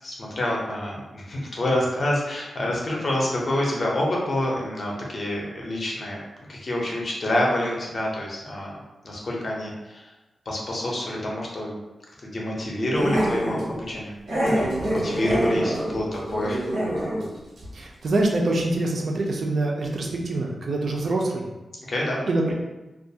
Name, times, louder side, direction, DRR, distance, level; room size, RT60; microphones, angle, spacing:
voice 1, 0.0-6.2 6.5-8.7 9.0-10.1 10.5-11.8 12.2-16.6 21.9-22.3, left 1 dB, 40° left, -3 dB, 0.5 m, -27 dB
Growling, 12.9-13.7 14.3-17.3 17.6-17.7 18.0-18.1, equal, 75° right, 0.8 m, -25 dB
voice 2, 17.7-21.5 22.3-22.5, right 2 dB, 50° right, 0 dB, 0.4 m, -25 dB
2.3 x 2.2 x 2.7 m, 1.0 s
wide cardioid pair, 170°, 0 cm